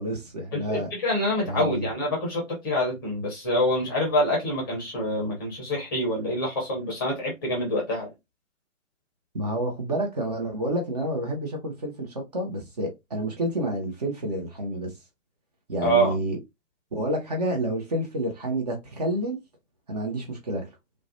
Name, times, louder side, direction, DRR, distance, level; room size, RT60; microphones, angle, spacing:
voice 1, 0.0-0.9 1.4-1.9 9.3-14.9 15.7-16.4 16.9-19.4 19.9-20.7, right 1 dB, 30° right, 0.6 m, -29 dB
voice 2, 0.5-8.1 15.8-16.1, equal, 15° left, 0.6 m, -26 dB
2.3 x 2.1 x 2.6 m
figure-of-eight pair, 130°, 40 cm